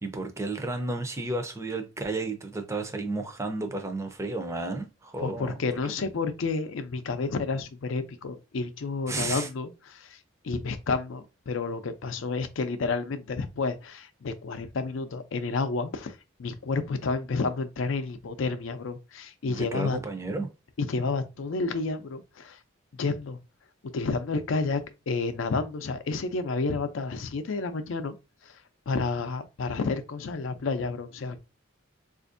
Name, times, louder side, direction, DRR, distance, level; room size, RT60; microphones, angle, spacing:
voice 1, 0.0-5.5 5.8-5.9 9.1-9.5 19.5-20.5, right 2 dB, 15° right, 0.5 m, -32 dB
voice 2, 5.2-10.2 10.4-20.0 20.8-22.6 22.9-23.4 23.9-24.8 25.1-28.1 28.4-28.6 28.9-31.4, left 4 dB, 80° left, 0.5 m, -30 dB
4.2 x 2.5 x 2.5 m
head